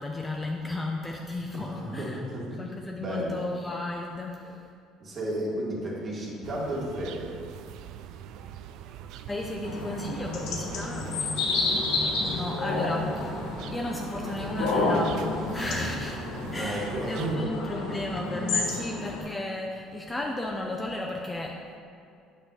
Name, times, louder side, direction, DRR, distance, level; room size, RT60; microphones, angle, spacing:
voice 1, 0.0-2.2 2.6-4.7 9.3-11.3 12.4-21.8, left 1 dB, 15° left, 0 dB, 0.5 m, -34 dB
voice 2, 1.5-3.4 5.0-7.4 12.0-12.4 16.5-17.5 18.3-18.4, right 1 dB, 35° right, -4 dB, 2.0 m, -33 dB
sound 1, 6.4-17.4, right 9 dB, 65° right, 0.4 m, -43 dB
sound 2, 9.6-19.2, left 3 dB, 80° left, 1.6 m, -30 dB
8.8 x 6.2 x 4.1 m, 2.4 s
cardioid pair, 150°, 0 cm